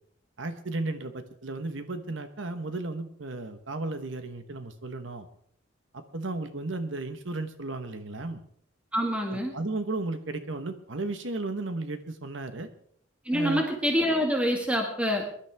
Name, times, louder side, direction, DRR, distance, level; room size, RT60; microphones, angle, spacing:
voice 1, 0.4-5.3 5.9-8.4 9.3-12.7 13.3-13.7, right 2 dB, 70° right, 9 dB, 1.1 m, -34 dB
voice 2, 8.9-9.5 13.3-15.3, equal, 5° right, 1 dB, 1.8 m, -26 dB
22.5 x 11.5 x 3.5 m, 0.64 s
head